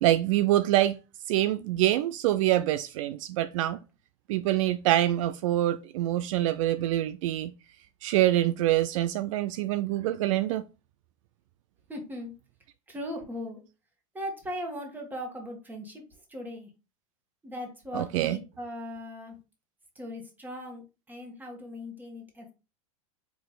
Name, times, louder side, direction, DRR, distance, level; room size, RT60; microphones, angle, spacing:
voice 1, 0.0-1.0 1.3-3.8 4.3-7.5 8.0-10.6 17.9-18.4, right 14 dB, 65° right, 0.4 m, -25 dB
voice 2, 11.9-12.3 12.9-13.6 14.1-16.0 16.3-16.7 17.4-19.3 19.9-22.5, left 1 dB, 10° right, 1.5 m, -38 dB
4.7 x 2.9 x 3.9 m
supercardioid pair, 125°, 18 cm